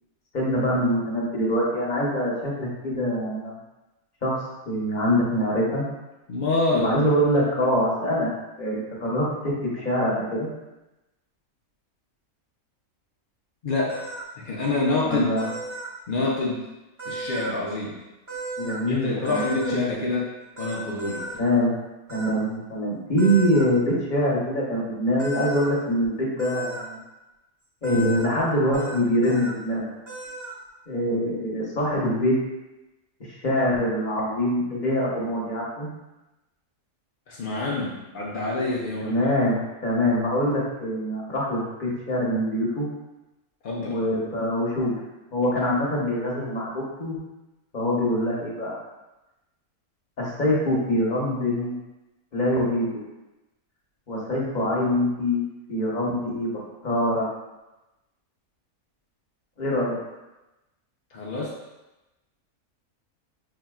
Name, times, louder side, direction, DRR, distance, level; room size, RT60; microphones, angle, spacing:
voice 1, 0.3-3.6 4.2-4.4 4.6-5.8 6.7-8.3 8.6-10.5 15.1-15.5 18.6-19.4 19.7-19.8 20.1-20.2 21.4-21.7 22.1-27.0 27.8-29.9 30.9-32.4 33.4-35.9 39.0-42.9 43.8-44.9 45.3-47.2 47.7-48.7 50.2-51.8 52.3-53.0 54.1-55.4 55.7-56.5 56.8-57.3 59.6-60.0, equal, 35° left, -5 dB, 0.9 m, -24 dB
voice 2, 6.3-6.9 13.6-14.0 14.4-15.3 16.1-16.7 17.1-18.0 18.9-21.3 29.3-29.4 37.3-39.2 43.6-44.0 51.1-51.2 61.1-61.6, left 3 dB, 65° left, -4 dB, 0.5 m, -27 dB
sound 1, 13.9-14.2 15.4-15.9 17.0-17.5 18.3-18.8 19.2-19.7 20.6-21.3 22.1-22.3 23.2-23.6 25.2-25.7 26.4-26.8 27.8-28.3 28.7-29.0 29.2-29.5 30.1-30.6, right 2 dB, 25° right, 1.1 m, -34 dB
5.4 x 2.8 x 2.3 m, 1.0 s
omnidirectional pair, 1.6 m